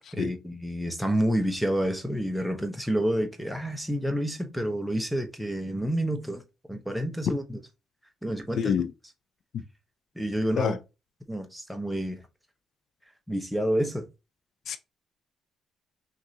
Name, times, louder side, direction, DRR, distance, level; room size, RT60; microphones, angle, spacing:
voice 1, 0.1-6.4 6.7-7.6 8.2-8.7 10.2-10.8 11.3-12.2 13.3-14.0, equal, ahead, 0.8 m, -29 dB
voice 2, 8.6-8.9 10.6-10.8 14.7-14.8, left 7 dB, 65° left, 0.5 m, -26 dB
6.0 x 2.6 x 2.8 m
cardioid pair, 90°, 0 cm